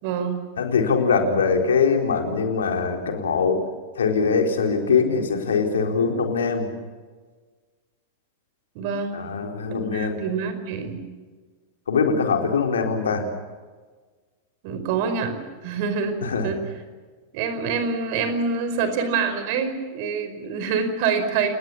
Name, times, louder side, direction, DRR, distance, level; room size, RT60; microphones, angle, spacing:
voice 1, 0.0-0.4 8.7-9.2 9.6-11.0 14.6-16.6 17.3-21.5, right 5 dB, 45° right, 9 dB, 5.0 m, -26 dB
voice 2, 0.6-3.7 4.0-6.7 9.1-10.2 11.9-13.3 16.2-16.5, left 5 dB, 65° left, 3 dB, 4.3 m, -22 dB
30.0 x 20.5 x 7.3 m, 1.4 s
figure-of-eight pair, 90°, 0 cm